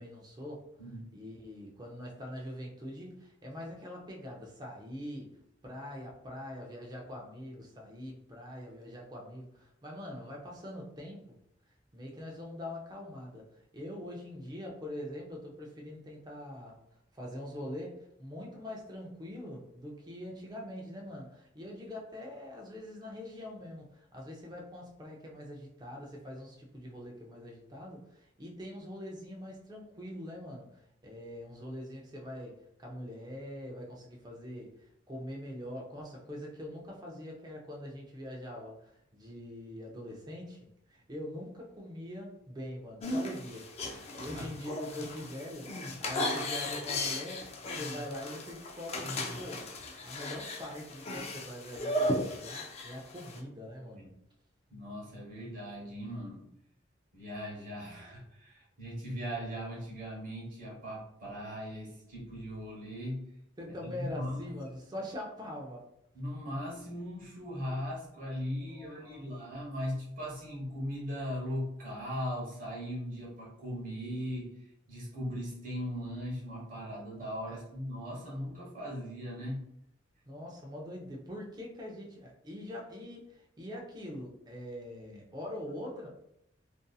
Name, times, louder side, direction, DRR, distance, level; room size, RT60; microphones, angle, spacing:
voice 1, 0.0-0.6 1.1-5.3 5.6-11.4 11.9-13.5 13.7-16.8 17.1-34.7 35.1-49.7 50.0-54.1 63.6-65.9 68.7-69.6 77.5-77.6 80.3-86.1, left 1 dB, 20° right, -1 dB, 0.5 m, -43 dB
sound 1, 43.0-53.4, left 1 dB, 35° left, 0.3 m, -36 dB
voice 2, 54.7-56.4 57.1-63.3 63.8-64.5 66.1-74.5 74.9-79.6, equal, 45° right, -4 dB, 1.1 m, -39 dB
2.6 x 2.5 x 2.3 m, 0.75 s
head